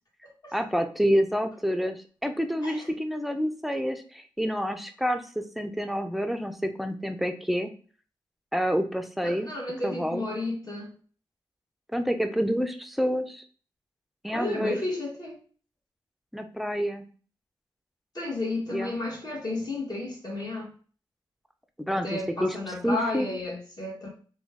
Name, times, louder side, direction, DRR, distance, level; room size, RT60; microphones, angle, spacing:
voice 1, 0.5-7.7 8.5-9.5 9.8-10.2 11.9-13.4 14.2-14.8 16.3-17.0 18.7-19.0 21.8-22.5 22.8-23.3, equal, ahead, 0.5 m, -28 dB
voice 2, 9.2-10.9 14.3-15.4 18.1-20.7 21.9-24.1, left 2 dB, 50° left, 1.5 m, -32 dB
3.0 x 2.3 x 3.5 m
cardioid pair, 50°, 9 cm